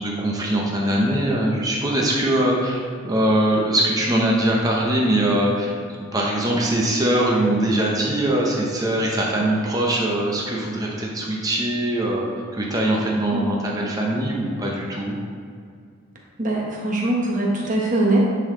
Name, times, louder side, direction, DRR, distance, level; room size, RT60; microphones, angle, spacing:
voice 1, 0.0-15.1, right 1 dB, 15° right, -3 dB, 0.8 m, -22 dB
voice 2, 13.3-13.6 16.4-18.2, right 2 dB, 35° right, -3 dB, 1.1 m, -22 dB
9.1 x 4.1 x 3.7 m, 2.2 s
head